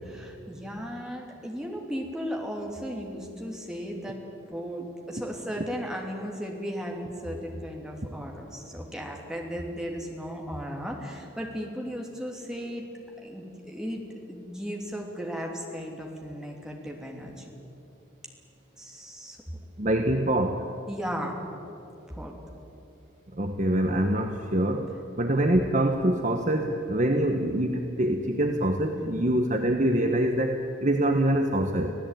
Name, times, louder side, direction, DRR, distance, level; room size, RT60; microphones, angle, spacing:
voice 1, 0.1-4.2 4.5-12.9 13.2-14.0 14.3-17.5 18.8-19.4 20.9-21.4 22.1-22.3 29.0-29.2, equal, 5° right, 0 dB, 2.9 m, -36 dB
voice 2, 19.8-20.7 23.4-31.9, right 1 dB, 35° right, 5 dB, 1.1 m, -25 dB
26.0 x 16.5 x 9.1 m, 2.9 s
head